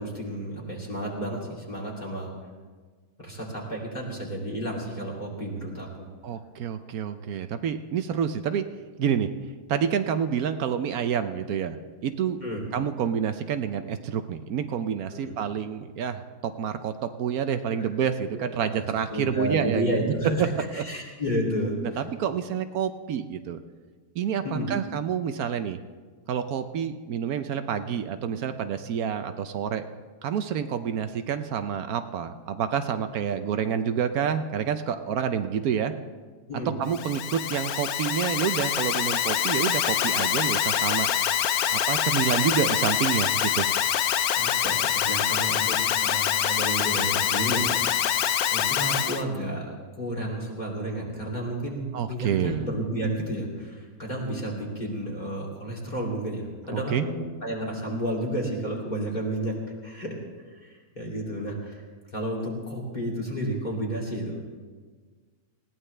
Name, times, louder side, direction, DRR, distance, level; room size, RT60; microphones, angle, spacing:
voice 1, 0.0-2.3 3.2-6.1 12.4-12.6 15.1-15.4 17.8-17.9 18.3-18.5 18.7-22.0 24.4-24.8 36.5-36.7 44.3-48.1 48.5-60.2 60.5-61.8 62.1-64.4, right 1 dB, 30° left, -3 dB, 3.1 m, -31 dB
voice 2, 6.2-8.6 9.0-9.3 9.7-12.4 12.7-20.0 20.4-20.5 20.7-20.8 21.8-23.6 24.2-25.8 26.3-29.8 30.2-35.9 36.8-41.1 41.7-43.7 51.9-52.7 56.7-57.0, right 8 dB, 75° right, 9 dB, 1.2 m, -28 dB
Alarm, 36.9-49.2, left 10 dB, 75° left, 1.1 m, -25 dB
20.0 x 16.5 x 3.3 m, 1.5 s
omnidirectional pair, 1.6 m